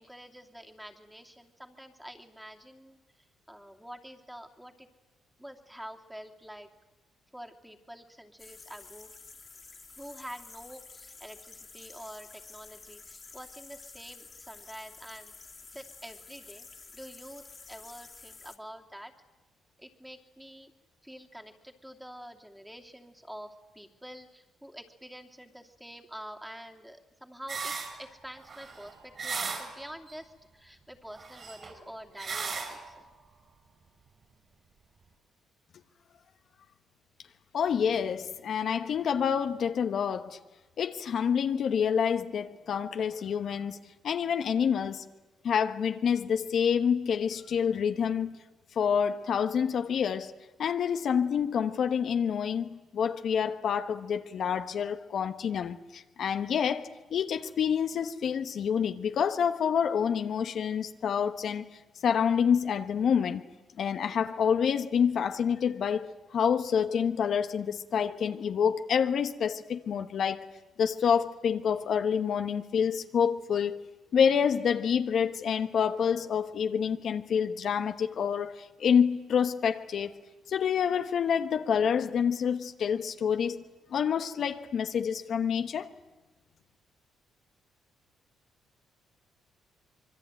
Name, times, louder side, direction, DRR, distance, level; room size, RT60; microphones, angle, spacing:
voice 1, 0.0-4.9 5.4-6.7 7.3-9.1 9.9-15.3 15.7-16.7 16.9-19.1 19.8-20.7 21.0-33.0, equal, 5° right, 2.8 m, -47 dB
sound 1, 8.4-18.6, left 4 dB, 30° left, 2.5 m, -50 dB
sound 2, 27.5-28.0 28.4-30.1 31.1-31.9 32.2-32.9, right 5 dB, 45° right, 6.4 m, -37 dB
voice 2, 37.5-40.4 40.8-43.8 44.0-45.0 45.4-48.4 48.7-50.3 50.6-63.4 63.8-70.5 70.8-73.8 74.1-80.2 80.5-83.6 83.9-85.9, left 7 dB, 60° left, 1.2 m, -28 dB
26.0 x 23.0 x 9.2 m
cardioid pair, 90°, 0 cm